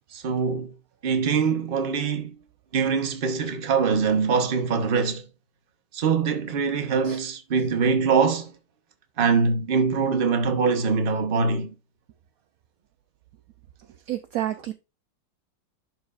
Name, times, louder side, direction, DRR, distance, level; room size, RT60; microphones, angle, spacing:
voice 1, 0.1-0.7 1.0-2.3 2.7-5.2 5.9-8.5 9.2-11.7, right 5 dB, 40° right, 0.9 m, -23 dB
voice 2, 14.1-14.7, right 13 dB, 75° right, 0.8 m, -29 dB
11.0 x 4.8 x 2.4 m
omnidirectional pair, 2.0 m